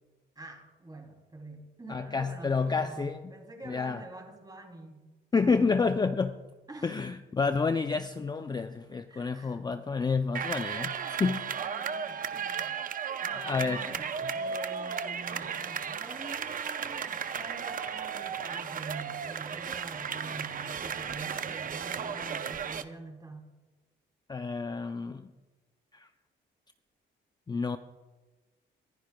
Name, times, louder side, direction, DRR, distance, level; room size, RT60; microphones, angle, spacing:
voice 1, 0.3-5.0 6.7-7.0 9.1-9.6 11.5-12.8 13.2-23.4, right 2 dB, 20° right, 2 dB, 3.1 m, -46 dB
voice 2, 1.9-3.2 3.7-4.0 5.3-6.4 6.8-11.5 13.4-13.8 24.3-25.3 25.9-26.1 27.5-27.8, left 4 dB, 20° left, 8 dB, 0.5 m, -29 dB
sound 1, 10.3-22.8, right 7 dB, 45° right, 0.7 m, -35 dB
25.0 x 10.5 x 2.3 m, 1.2 s
cardioid pair, 90°, 20 cm